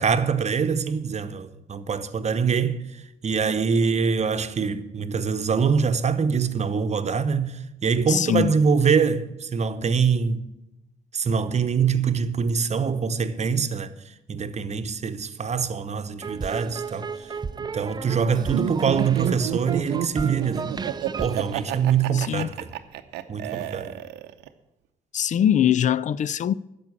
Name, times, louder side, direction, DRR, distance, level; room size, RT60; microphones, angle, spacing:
voice 1, 0.0-2.8 3.2-10.5 11.1-13.9 14.3-17.1 17.6-20.7 21.2-22.7 23.3-24.0, right 6 dB, 40° right, 0.9 m, -24 dB
voice 2, 8.1-8.6 22.1-22.5 25.1-26.5, left 10 dB, 45° left, 0.4 m, -22 dB
sound 1, 16.2-22.5, right 5 dB, 25° right, 0.5 m, -33 dB
Laughter, 18.5-24.5, right 12 dB, 80° right, 0.7 m, -30 dB
10.5 x 6.9 x 8.4 m
hypercardioid pair, 55°, 17 cm